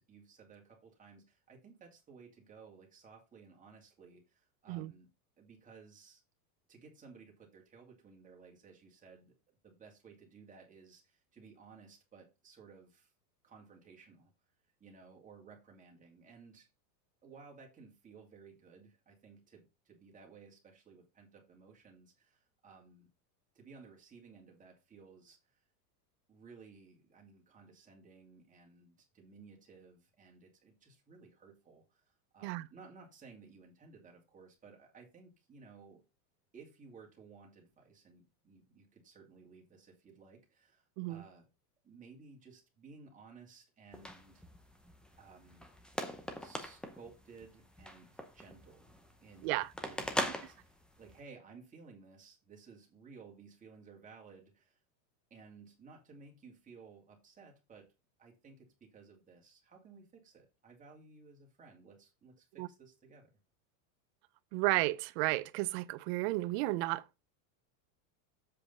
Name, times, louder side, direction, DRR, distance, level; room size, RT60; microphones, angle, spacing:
voice 1, 0.0-5.1 5.4-6.2 6.7-9.3 9.6-13.1 13.4-14.3 14.8-16.7 17.2-23.1 23.5-25.6 26.3-36.0 36.5-41.5 41.8-44.4 45.2-45.7 46.4-48.9 49.2-54.8 55.3-57.9 58.2-63.3, right 5 dB, 15° right, 2.5 m, -57 dB
sound 1, 43.9-51.2, equal, ahead, 0.7 m, -42 dB
voice 2, 64.5-67.2, right 19 dB, 40° right, 0.5 m, -33 dB
7.7 x 5.1 x 5.5 m
supercardioid pair, 150°, 50 cm